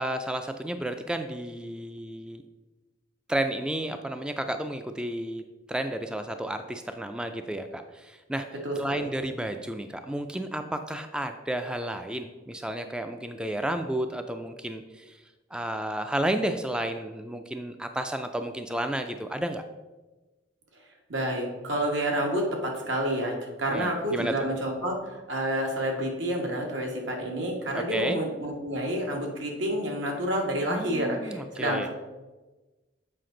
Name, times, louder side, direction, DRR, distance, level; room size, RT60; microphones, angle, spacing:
voice 1, 0.0-2.4 3.3-5.4 5.7-8.5 8.8-15.2 15.5-19.6 23.7-24.3 27.7-28.2 30.7-31.9, right 1 dB, 5° right, 7 dB, 0.3 m, -32 dB
voice 2, 8.6-9.1 21.1-31.9, right 1 dB, 80° right, 1 dB, 1.4 m, -29 dB
7.6 x 5.0 x 3.8 m, 1.2 s
head